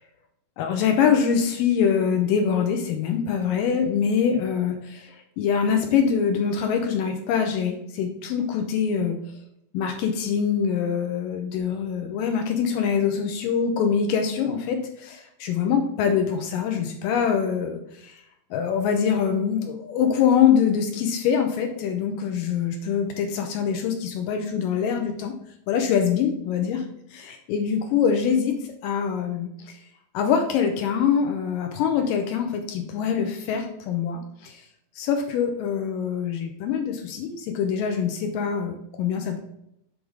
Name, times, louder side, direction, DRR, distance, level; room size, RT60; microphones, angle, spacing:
voice 1, 0.6-9.2 9.7-18.2 18.5-25.4 25.7-26.9 27.1-28.6 28.8-29.5 30.1-34.6 35.0-39.4, left 7 dB, 75° left, 4 dB, 2.3 m, -24 dB
7.9 x 3.5 x 4.8 m, 0.78 s
omnidirectional pair, 4.3 m